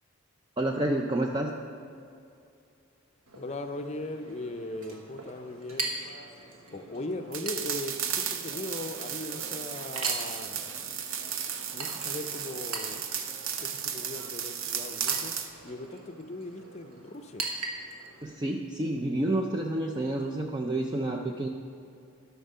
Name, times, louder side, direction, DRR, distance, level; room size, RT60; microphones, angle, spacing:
voice 1, 0.6-1.5 18.2-21.5, right 1 dB, 20° right, 1 dB, 0.4 m, -29 dB
Chink clink, 3.3-18.2, right 3 dB, 85° right, 1.3 m, -41 dB
voice 2, 3.4-5.9 6.7-10.9 11.7-13.2 13.6-15.3 15.6-17.4, left 1 dB, 30° left, 6 dB, 0.5 m, -39 dB
sound 1, 7.3-15.5, right 8 dB, 65° right, 0.7 m, -34 dB
12.5 x 5.9 x 5.5 m, 2.5 s
head